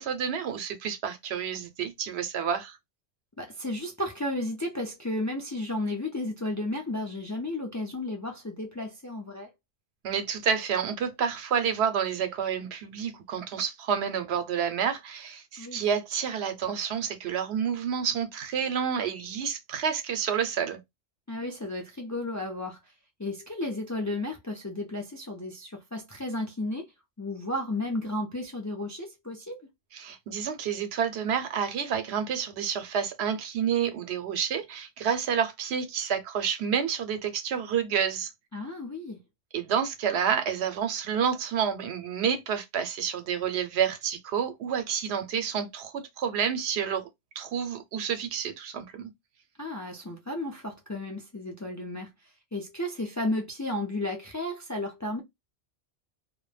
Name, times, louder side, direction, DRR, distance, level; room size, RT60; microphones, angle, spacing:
voice 1, 0.0-2.8 10.0-20.8 29.9-38.3 39.5-47.1 47.4-49.1, right 7 dB, 85° right, 0.9 m, -29 dB
voice 2, 3.4-9.5 15.6-15.9 21.3-22.9 23.2-26.9 27.2-29.7 38.5-39.2 49.6-52.1 52.5-55.2, left 1 dB, 30° left, 0.3 m, -33 dB
2.2 x 2.1 x 3.1 m
omnidirectional pair, 1.1 m